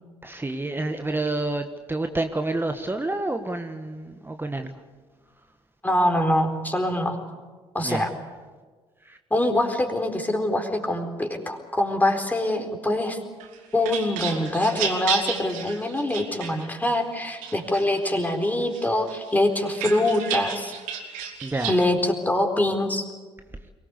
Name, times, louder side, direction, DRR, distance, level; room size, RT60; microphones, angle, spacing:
voice 1, 0.2-4.7 7.8-8.1 9.0-9.2 21.4-21.8, right 2 dB, 15° right, 7 dB, 1.4 m, -29 dB
voice 2, 5.8-7.2 7.7-8.1 9.3-13.2 13.7-20.7 21.7-23.1, left 1 dB, 10° left, 4 dB, 4.2 m, -24 dB
sound 1, 13.4-17.0 17.4-18.3 18.7-21.8, right 7 dB, 75° right, 3.1 m, -32 dB
23.5 x 18.5 x 8.2 m, 1.4 s
hypercardioid pair, 55°, 14 cm